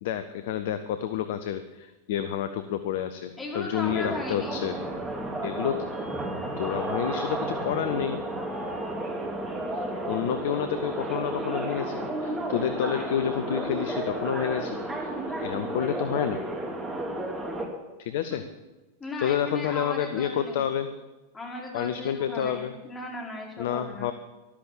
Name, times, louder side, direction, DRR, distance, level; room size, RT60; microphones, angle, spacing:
voice 1, 0.0-4.8 5.4-5.9 6.6-8.2 9.7-16.4 18.0-18.4 19.2-20.9 21.7-22.8 23.6-24.1, left 9 dB, 55° left, 11 dB, 0.8 m, -29 dB
voice 2, 3.4-4.6 18.3-18.4 19.0-20.7 21.3-24.1, left 2 dB, 15° left, -1 dB, 4.4 m, -36 dB
sound 1, 3.8-17.7, right 1 dB, 15° right, 2.5 m, -32 dB
13.5 x 12.0 x 7.5 m, 1.2 s
figure-of-eight pair, 90°, 0 cm